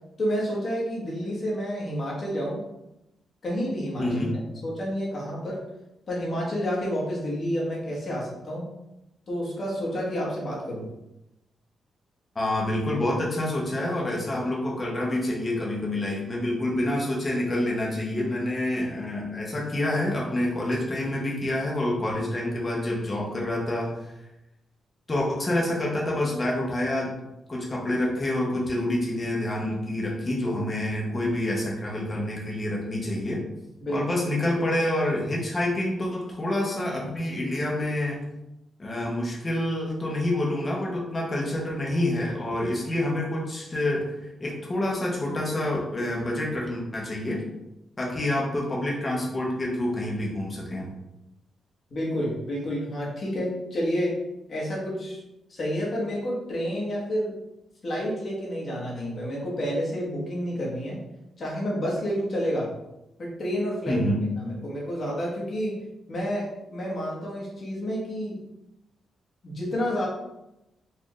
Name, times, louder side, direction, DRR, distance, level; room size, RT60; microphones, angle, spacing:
voice 1, 0.2-2.6 3.4-4.1 4.6-5.6 6.1-8.7 9.3-10.9 33.8-34.0 51.9-54.2 54.5-55.2 55.5-57.3 57.8-61.0 61.4-62.7 63.2-64.0 64.4-65.8 66.1-68.4 69.4-70.1, equal, 40° left, -4 dB, 1.2 m, -29 dB
voice 2, 4.0-4.3 12.3-23.9 25.1-27.1 27.5-33.4 33.9-38.2 38.8-47.4 48.0-50.9 63.9-64.2, left 1 dB, 20° left, -3 dB, 0.8 m, -27 dB
4.3 x 2.4 x 3.1 m, 0.91 s
wide cardioid pair, 165°, 0 cm